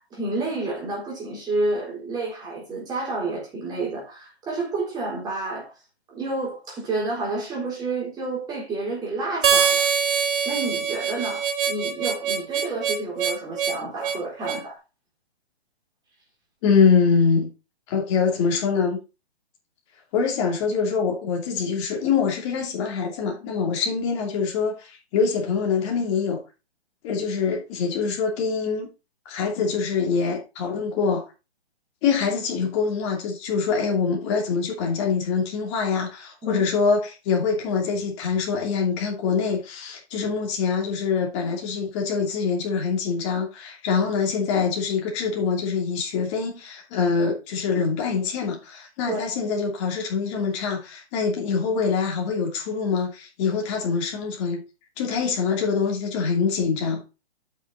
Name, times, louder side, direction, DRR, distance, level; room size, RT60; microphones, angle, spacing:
voice 1, 0.0-5.7 6.1-9.9 10.5-14.8 36.4-36.6 49.1-49.2, right 2 dB, 10° right, 3.7 m, -30 dB
Harmonica, 9.4-14.7, right 7 dB, 55° right, 1.6 m, -24 dB
voice 2, 16.6-17.5 17.9-19.0 20.1-26.4 27.0-28.9 29.2-31.2 32.0-54.6 55.0-57.0, left 5 dB, 25° left, 2.7 m, -24 dB
8.2 x 6.2 x 4.1 m
hypercardioid pair, 150°, 32 cm